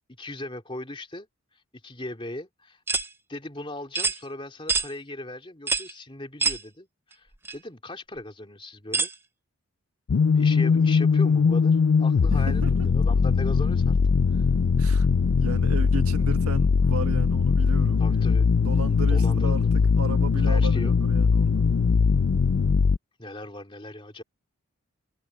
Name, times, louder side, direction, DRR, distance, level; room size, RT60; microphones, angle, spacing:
voice 1, 0.2-1.3 1.8-2.8 3.3-9.1 10.3-14.0 14.3-14.4 18.0-18.5 19.1-20.0 20.4-20.9 23.2-24.2, left 1 dB, 25° left, 2.7 m, -38 dB
sound 1, 2.9-3.1 3.9-4.2 4.7-4.9 5.7-5.9 6.4-6.6 7.4-7.5 8.9-9.1, right 4 dB, 10° right, 0.6 m, -25 dB
sound 2, 10.1-23.0, left 5 dB, 65° left, 0.4 m, -21 dB
voice 2, 12.3-12.9 14.8-15.1 15.4-18.0 18.6-19.6 20.0-21.7, right 2 dB, 85° right, 1.9 m, -35 dB
head